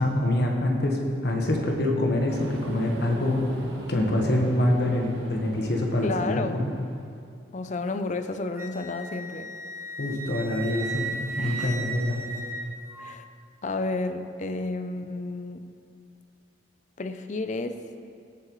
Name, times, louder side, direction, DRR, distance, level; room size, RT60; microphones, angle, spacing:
voice 1, 0.0-3.4 3.9-6.7 10.0-12.2, left 1 dB, 60° left, 0 dB, 1.4 m, -25 dB
sound 1, 2.3-7.2, right 1 dB, 70° right, 1.5 m, -41 dB
voice 2, 6.0-6.8 7.5-9.5 11.4-11.7 13.0-13.2 13.6-15.7 17.0-17.8, left 3 dB, 40° left, 9 dB, 0.5 m, -31 dB
Wind instrument woodwind instrument, 8.6-13.1, right 3 dB, 15° right, 0.6 m, -36 dB
17.5 x 7.6 x 3.2 m, 2.4 s
head